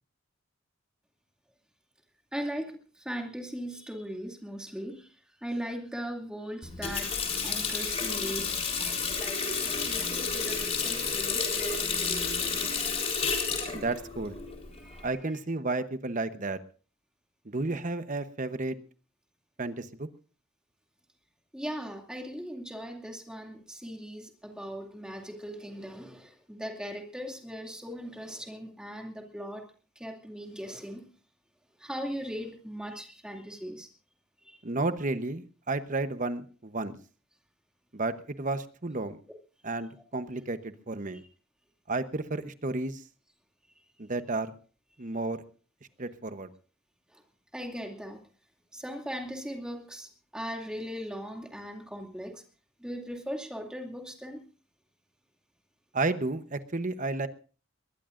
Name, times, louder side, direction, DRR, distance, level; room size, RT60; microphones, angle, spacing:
voice 1, 2.3-5.1 5.4-7.1 7.4-12.5 14.7-15.1 21.5-29.6 30.0-31.0 31.8-33.9 34.4-34.6 47.1-47.2 47.5-48.2 48.7-52.4 52.8-54.5, equal, 5° right, 2 dB, 2.5 m, -39 dB
Water tap faucet, 6.6-15.1, left 5 dB, 30° left, 3.8 m, -31 dB
voice 2, 13.7-14.4 15.0-16.6 17.5-18.8 19.6-20.1 34.6-37.0 37.9-39.2 39.6-41.2 41.9-43.0 44.0-44.5 45.0-45.4 46.0-46.5 55.9-57.3, right 2 dB, 40° right, 11 dB, 1.0 m, -32 dB
21.5 x 19.5 x 2.6 m, 0.38 s
head